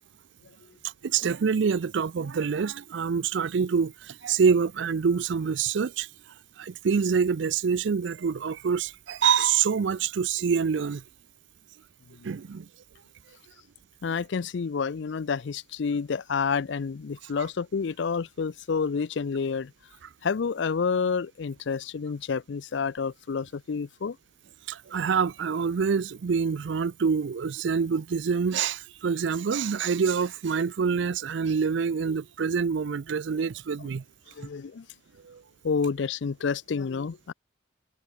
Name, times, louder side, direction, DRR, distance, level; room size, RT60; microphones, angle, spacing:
voice 1, 1.0-6.1 6.6-11.0 12.2-12.7 24.7-34.0 35.2-35.4, right 6 dB, 65° right, 0.4 m, -26 dB
voice 2, 14.0-19.7 20.2-24.2 34.4-34.8 35.6-37.3, left 5 dB, 65° left, 0.4 m, -29 dB
head